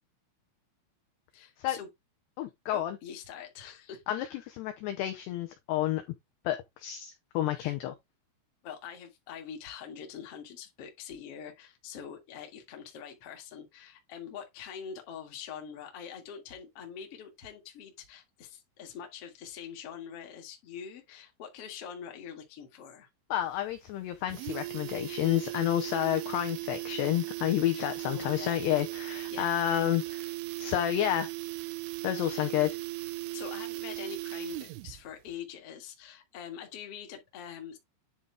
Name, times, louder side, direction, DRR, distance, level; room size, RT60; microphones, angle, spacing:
voice 1, 1.3-1.9 2.7-4.5 7.5-7.7 8.6-23.1 27.7-28.6 29.3-29.4 32.2-32.5 33.3-37.8, left 8 dB, 65° left, 1.4 m, -44 dB
voice 2, 2.4-3.0 4.1-6.0 6.5-7.9 23.3-30.3 30.6-31.3 32.0-32.7, left 13 dB, 90° left, 2.3 m, -30 dB
sound 1, 23.4-23.5 23.8-23.9 24.2-35.0 35.3-35.4, right 20 dB, 85° right, 2.8 m, -37 dB
9.7 x 3.8 x 3.4 m
omnidirectional pair, 5.8 m